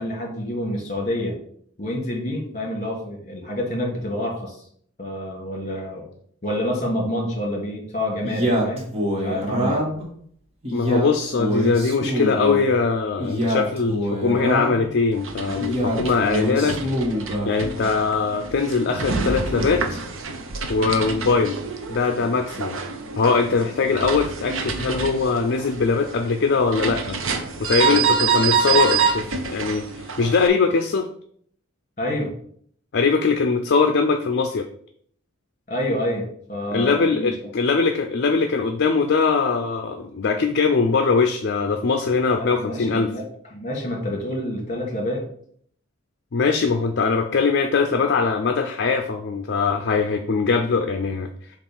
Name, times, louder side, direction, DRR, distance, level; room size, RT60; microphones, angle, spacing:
voice 1, 0.0-1.4 1.8-4.7 5.0-6.1 6.4-8.9 9.2-9.8 32.0-32.3 35.7-37.5 42.4-43.2 43.5-45.2, left 1 dB, 35° left, 0 dB, 2.3 m, -28 dB
Male speech man speaking, 8.2-10.1 10.6-12.6 13.2-14.9 15.6-17.6, equal, 30° right, 1.5 m, -25 dB
voice 2, 10.7-16.8 17.5-20.0 20.7-21.6 21.9-22.8 23.2-27.2 27.6-31.1 32.9-34.7 36.7-43.1 46.3-51.3, left 4 dB, 55° left, 6 dB, 0.5 m, -21 dB
sound 1, 15.1-30.5, right 5 dB, 65° right, 0.8 m, -27 dB
7.4 x 2.5 x 5.5 m, 0.62 s
head